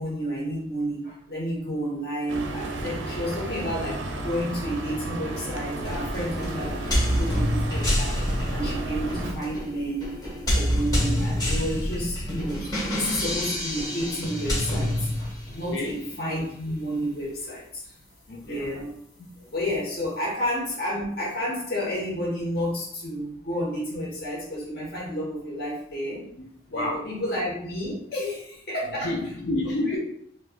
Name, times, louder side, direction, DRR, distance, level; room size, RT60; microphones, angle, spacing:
voice 1, 0.0-10.1 10.5-17.9 18.4-18.9 19.5-26.2 26.7-29.2 29.9-30.0, equal, 55° left, -4 dB, 1.3 m, -31 dB
sound 1, 2.3-9.3, right 2 dB, 90° right, 0.6 m, -33 dB
sound 2, 5.8-15.7, equal, 20° left, 1.3 m, -27 dB
voice 2, 18.3-18.6 19.4-19.5 26.7-27.0 28.8-30.0, left 1 dB, 70° left, -5 dB, 0.6 m, -29 dB
4.5 x 2.4 x 2.4 m, 0.68 s
head